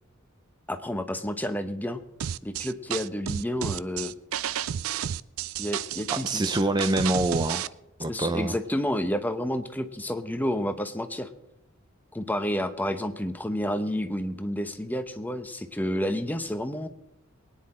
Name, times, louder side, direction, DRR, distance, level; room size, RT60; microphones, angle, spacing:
voice 1, 0.7-2.0 2.4-4.1 5.6-6.4 6.8-6.9 8.1-11.3 12.1-16.9, equal, 10° left, 8 dB, 0.9 m, -30 dB
sound 1, 2.2-7.7, right 9 dB, 80° right, 0.4 m, -31 dB
voice 2, 6.1-7.6 8.0-8.6, right 2 dB, 20° right, 10 dB, 0.5 m, -26 dB
23.0 x 10.0 x 4.3 m, 0.84 s
head